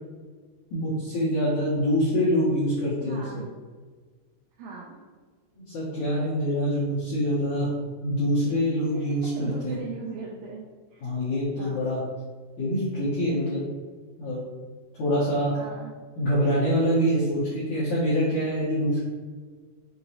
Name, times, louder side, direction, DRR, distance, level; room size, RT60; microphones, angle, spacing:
voice 1, 0.7-3.2 5.7-7.7 8.0-9.8 11.0-12.0 12.6-13.6 14.2-14.4 15.0-15.5 16.2-19.0, equal, 75° left, -10 dB, 1.7 m, -25 dB
voice 2, 3.0-3.5 4.6-5.0 8.9-10.7 10.9-11.1 11.6-11.9 15.5-15.9, right 4 dB, 85° right, -4 dB, 2.1 m, -39 dB
6.5 x 2.8 x 2.8 m, 1.5 s
omnidirectional pair, 4.8 m